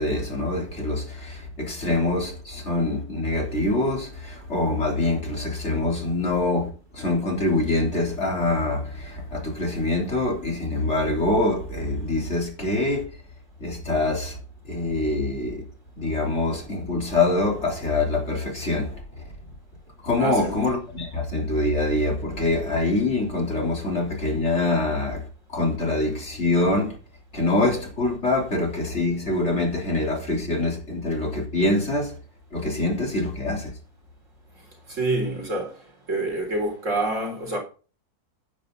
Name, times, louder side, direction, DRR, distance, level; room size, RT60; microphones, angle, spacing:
voice 1, 0.0-13.0 13.6-14.4 14.6-15.6 16.0-19.2 20.0-27.0 27.3-32.2 32.5-33.7, left 2 dB, 45° left, 3.9 m, -25 dB
voice 2, 20.2-20.7 34.9-35.8 36.1-37.6, right 2 dB, 55° right, 4.2 m, -27 dB
10.0 x 9.5 x 3.9 m
omnidirectional pair, 1.6 m